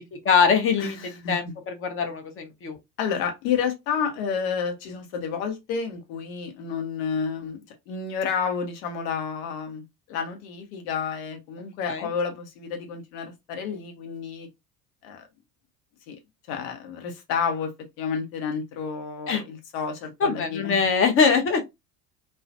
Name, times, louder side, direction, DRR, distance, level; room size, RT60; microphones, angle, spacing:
voice 1, 0.0-2.8 11.9-12.1 19.3-19.4 20.2-21.6, left 5 dB, 25° left, 0.7 m, -23 dB
voice 2, 0.8-1.3 3.0-14.5 15.0-15.2 16.1-16.2 16.5-17.7 18.0-20.8, left 6 dB, 65° left, 0.9 m, -30 dB
2.3 x 2.1 x 2.5 m
hypercardioid pair, 70°, 49 cm